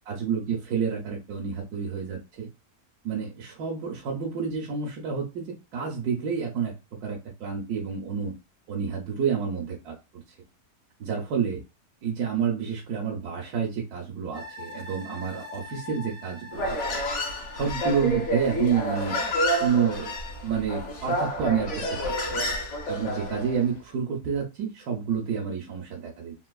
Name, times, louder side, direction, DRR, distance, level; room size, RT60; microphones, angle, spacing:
voice 1, 0.1-2.5 3.0-5.4 5.7-6.7 7.0-8.3 8.7-10.2 11.0-11.6 12.0-17.0 17.5-19.2 19.6-20.1 20.4-22.5 22.9-26.3, right 6 dB, 90° right, -1 dB, 1.3 m, -29 dB
sound 1, 14.3-21.6 22.0-22.1, left 3 dB, 75° left, 1.2 m, -45 dB
Human voice, 16.5-23.6, equal, 55° left, 1.1 m, -29 dB
3.8 x 2.5 x 2.3 m, 0.28 s
omnidirectional pair, 1.6 m